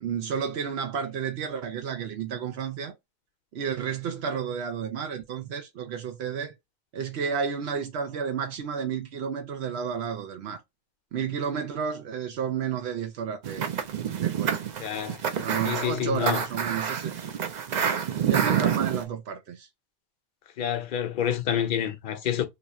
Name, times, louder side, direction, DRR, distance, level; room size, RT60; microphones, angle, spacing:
voice 1, 0.0-2.9 3.5-6.5 6.9-10.6 11.1-13.7 14.2-14.7 15.4-17.1 18.2-19.7, right 7 dB, 85° right, 0.9 m, -31 dB
sound 1, 13.4-19.0, right 8 dB, 55° right, 0.6 m, -28 dB
voice 2, 14.8-15.2 15.6-16.4 20.6-22.5, left 10 dB, 55° left, 0.8 m, -28 dB
2.9 x 2.3 x 4.0 m
omnidirectional pair, 1.1 m